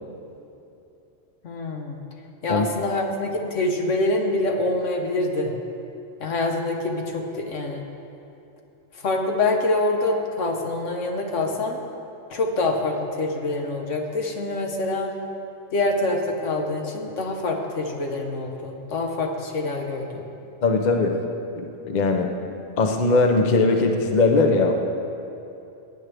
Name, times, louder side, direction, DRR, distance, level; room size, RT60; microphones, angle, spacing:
voice 1, 1.4-2.0 2.4-5.5 6.2-7.8 8.9-11.8 12.3-15.1 15.7-20.2, left 2 dB, 70° left, 2 dB, 1.4 m, -25 dB
voice 2, 20.6-21.1 21.6-22.3 22.8-24.8, left 3 dB, 40° left, 3 dB, 0.7 m, -20 dB
17.5 x 9.0 x 3.4 m, 2.8 s
omnidirectional pair, 1.3 m